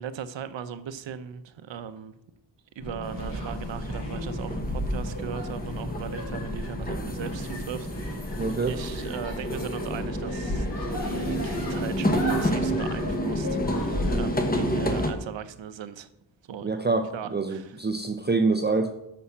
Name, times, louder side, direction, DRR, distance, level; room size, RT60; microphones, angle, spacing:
voice 1, 0.0-2.1 2.8-8.3 8.7-16.1 16.5-16.7 17.1-17.8, right 8 dB, 80° right, 12 dB, 0.8 m, -38 dB
sound 1, 2.8-14.2, left 1 dB, 65° left, 3.9 m, -34 dB
sound 2, 3.0-15.1, equal, 20° left, 1.1 m, -30 dB
voice 2, 8.4-8.8 16.6-18.9, right 3 dB, 25° right, 6 dB, 0.5 m, -26 dB
8.5 x 6.3 x 7.1 m, 0.83 s
wide cardioid pair, 165°, 44 cm